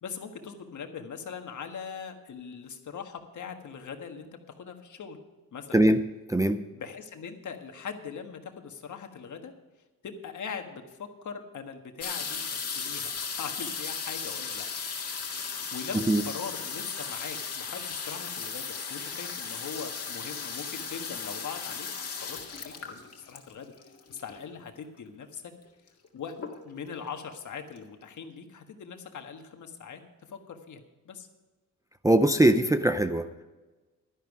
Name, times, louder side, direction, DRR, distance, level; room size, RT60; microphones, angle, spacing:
voice 1, 0.0-5.2 5.5-5.8 6.7-9.5 10.0-14.7 15.4-21.9 22.2-23.7 24.1-25.4 26.1-26.4 26.6-30.0 30.3-31.3, left 6 dB, 60° left, 5 dB, 1.5 m, -41 dB
voice 2, 5.7-6.0 6.3-6.6 15.9-16.2 32.0-33.4, right 1 dB, 10° right, 8 dB, 0.5 m, -22 dB
sound 1, 12.0-24.5 25.4-25.5 25.7-26.1 26.4-26.9 27.5-27.6 27.8-27.9, left 5 dB, 45° left, 1.9 m, -36 dB
12.0 x 10.5 x 4.8 m, 1.2 s
wide cardioid pair, 135°, 34 cm